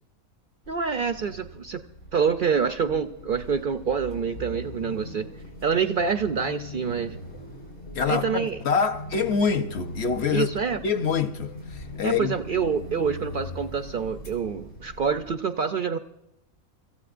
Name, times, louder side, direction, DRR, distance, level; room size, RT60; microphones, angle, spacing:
sound 1, 0.6-15.3, left 1 dB, 70° left, 4.6 m, -41 dB
voice 1, 0.7-1.8 2.1-5.3 5.6-7.2 8.1-8.6 10.3-10.8 12.0-16.0, right 6 dB, 60° right, 0.5 m, -26 dB
sound 2, 2.4-13.7, left 3 dB, 90° left, 2.6 m, -51 dB
voice 2, 7.9-10.5 10.8-12.3, left 6 dB, 55° left, 1.0 m, -25 dB
25.5 x 15.0 x 2.5 m
omnidirectional pair, 1.5 m